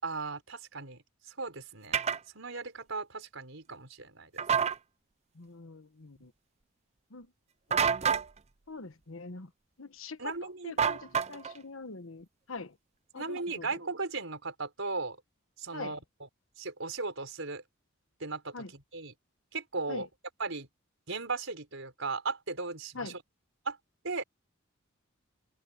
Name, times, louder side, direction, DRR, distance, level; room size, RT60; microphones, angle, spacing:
voice 1, 0.0-1.0 1.4-2.0 2.4-4.4 10.2-10.8 13.2-15.2 15.6-16.3 16.6-17.6 18.2-19.1 19.5-20.1 20.4-20.7 21.1-23.2 23.7-23.8 24.0-24.2, right 3 dB, 65° right, 5.1 m, -37 dB
sound 1, 1.9-2.2 4.4-4.8 7.7-8.3 10.8-11.6, right 7 dB, 30° right, 0.6 m, -27 dB
voice 2, 5.4-6.3 7.1-7.3 7.7-7.8 8.7-9.5 9.8-10.3 10.6-12.7 13.1-13.7 15.7-15.9 18.5-18.7 19.9-20.0 22.9-23.2, left 3 dB, 70° left, 1.2 m, -43 dB
open air
head